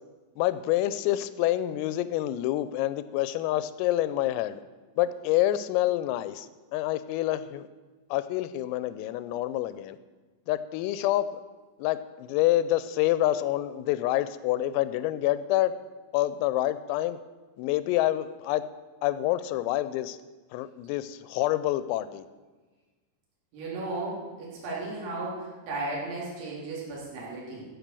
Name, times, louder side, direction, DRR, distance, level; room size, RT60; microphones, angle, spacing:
voice 1, 0.4-4.6 5.0-6.5 6.7-7.7 8.1-10.0 10.5-11.4 11.8-15.7 16.1-17.2 17.6-18.6 19.0-20.2 20.5-22.2, left 14 dB, 85° left, 14 dB, 3.2 m, -27 dB
voice 2, 23.5-27.7, right 2 dB, 65° right, -5 dB, 5.6 m, -35 dB
15.0 x 7.9 x 6.8 m, 1.3 s
omnidirectional pair, 6.0 m